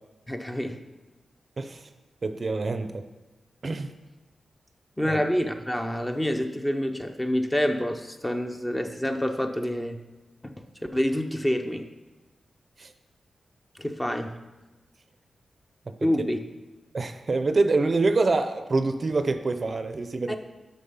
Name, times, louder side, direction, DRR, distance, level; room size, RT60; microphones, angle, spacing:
voice 1, 0.3-0.8 5.0-10.0 10.4-10.5 10.9-11.9 13.8-14.3 16.0-16.4 20.3-20.4, equal, 15° left, 6 dB, 0.6 m, -27 dB
voice 2, 2.2-3.0 3.6-3.9 5.0-5.2 12.8-12.9 16.0-16.1 16.9-20.4, right 3 dB, 45° right, 9 dB, 0.5 m, -25 dB
6.6 x 5.1 x 5.5 m, 1.2 s
cardioid pair, 75°, 0 cm